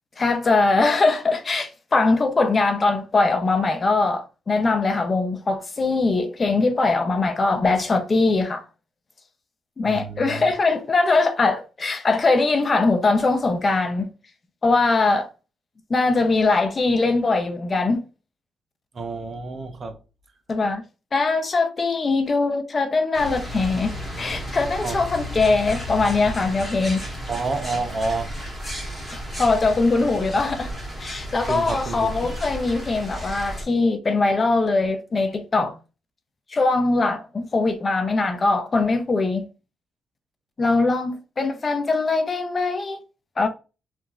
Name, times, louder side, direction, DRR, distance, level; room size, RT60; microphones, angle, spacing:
voice 1, 0.2-8.6 9.8-14.1 14.6-15.3 15.9-18.0 20.5-20.8 21.1-27.0 29.4-30.7 31.0-35.8 36.5-39.5 40.6-43.0 43.4-43.5, left 3 dB, 35° left, 0.5 m, -21 dB
voice 2, 9.8-10.5 18.9-20.0 24.8-25.0 27.3-28.3 31.5-32.2, right 3 dB, 40° right, 0.5 m, -29 dB
sound 1, 23.1-33.6, equal, 10° left, 1.2 m, -33 dB
3.0 x 2.4 x 2.3 m
cardioid pair, 90°, 0 cm